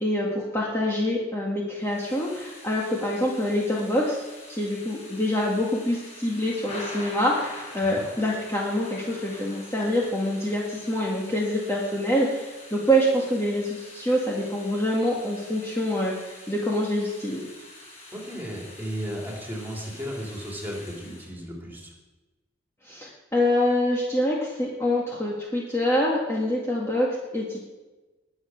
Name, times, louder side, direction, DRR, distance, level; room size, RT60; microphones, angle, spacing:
voice 1, 0.0-17.4 22.8-27.6, equal, 15° left, -4 dB, 1.9 m, -26 dB
Thunder / Rain, 1.8-21.3, left 2 dB, 35° left, 5.0 m, -45 dB
voice 2, 18.1-21.9, equal, 10° right, -2 dB, 3.5 m, -35 dB
20.5 x 7.2 x 6.3 m, 1.2 s
head